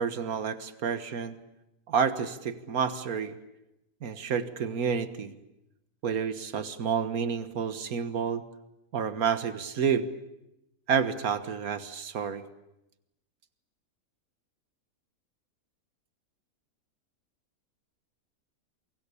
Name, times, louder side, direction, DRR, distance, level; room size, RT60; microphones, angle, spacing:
voice 1, 0.0-1.3 1.9-3.4 4.0-5.3 6.0-8.4 8.9-10.1 10.9-12.4, right 6 dB, 75° right, 11 dB, 1.8 m, -29 dB
29.0 x 23.5 x 8.4 m, 0.92 s
omnidirectional pair, 1.6 m